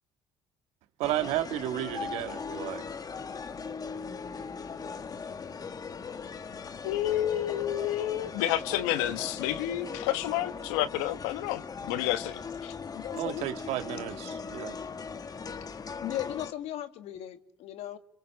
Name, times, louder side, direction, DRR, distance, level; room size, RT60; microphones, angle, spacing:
sound 1, 1.0-16.5, left 5 dB, 35° left, 1.6 m, -39 dB
voice 1, 1.0-2.8 13.1-14.8, right 14 dB, 75° right, 1.7 m, -33 dB
voice 2, 6.8-11.6 11.9-12.7, left 13 dB, 85° left, 1.3 m, -30 dB
voice 3, 12.9-13.4 16.0-18.0, left 13 dB, 70° left, 1.9 m, -37 dB
27.0 x 26.5 x 6.9 m
supercardioid pair, 80°, 11 cm